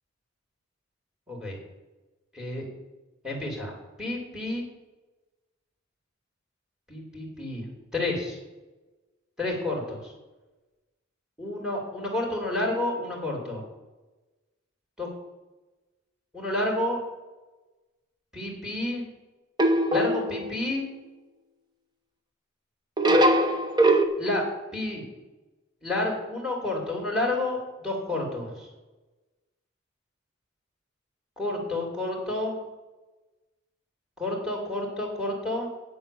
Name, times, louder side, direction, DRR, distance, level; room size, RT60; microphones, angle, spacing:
voice 1, 1.3-1.6 2.3-2.6 3.2-4.6 6.9-7.7 7.9-8.4 9.4-10.1 11.4-13.6 15.0-15.1 16.3-17.0 18.3-19.0 19.9-20.8 24.2-24.4 24.7-25.0 25.8-28.7 31.4-32.6 34.2-35.7, left 2 dB, 5° right, -2 dB, 2.8 m, -30 dB
sound 1, 19.6-20.6 23.0-24.1, right 1 dB, 20° right, 0.8 m, -21 dB
8.7 x 7.2 x 6.9 m, 1.1 s
head